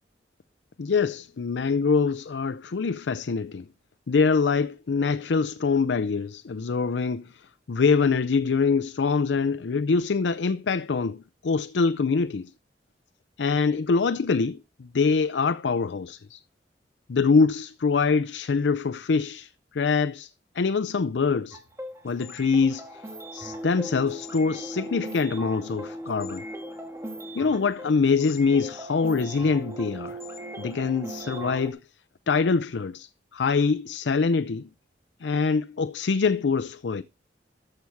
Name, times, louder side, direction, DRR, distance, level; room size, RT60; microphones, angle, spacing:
voice 1, 0.8-3.6 4.1-12.5 13.4-16.4 17.1-21.6 22.0-23.0 23.3-26.5 27.3-30.2 30.6-31.8 32.3-34.7 35.2-37.0, left 4 dB, 75° left, 0.5 m, -24 dB
sound 1, 21.5-31.7, equal, 15° right, 2.9 m, -38 dB
13.5 x 7.0 x 4.6 m
head